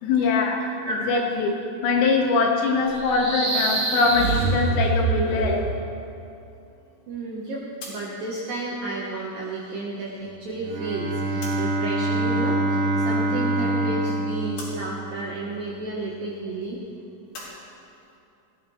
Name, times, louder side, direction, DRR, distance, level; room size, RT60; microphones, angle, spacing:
voice 1, 0.0-0.6 0.9-1.5 1.8-5.6, left 4 dB, 85° left, -1 dB, 4.4 m, -22 dB
sound 1, 2.9-5.8, right 3 dB, 45° right, 4.3 m, -25 dB
voice 2, 7.1-16.8, right 2 dB, 70° right, -4 dB, 2.2 m, -32 dB
sound 2, 7.8-11.9 12.2-13.2 13.6-17.5, left 2 dB, 65° left, 5.3 m, -45 dB
Bowed string instrument, 10.5-15.5, right 1 dB, 85° right, 4.2 m, -25 dB
19.5 x 14.5 x 3.2 m, 2.7 s
omnidirectional pair, 5.8 m